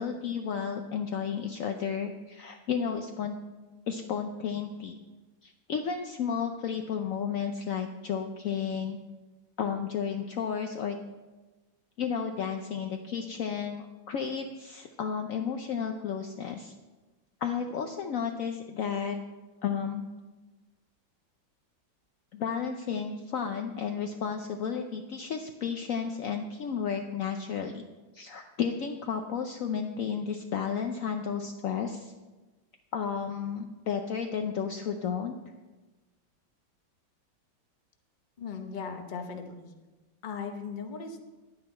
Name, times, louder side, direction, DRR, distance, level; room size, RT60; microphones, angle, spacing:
voice 1, 0.0-3.4 3.9-5.0 5.4-9.0 9.6-11.0 12.0-16.7 17.4-19.2 19.6-20.0 22.3-27.8 28.1-32.1 32.9-35.4, left 7 dB, 80° left, 5 dB, 0.7 m, -32 dB
voice 2, 38.4-39.7 40.2-41.2, left 5 dB, 45° left, 5 dB, 0.6 m, -38 dB
10.5 x 9.4 x 4.3 m, 1.2 s
omnidirectional pair, 2.1 m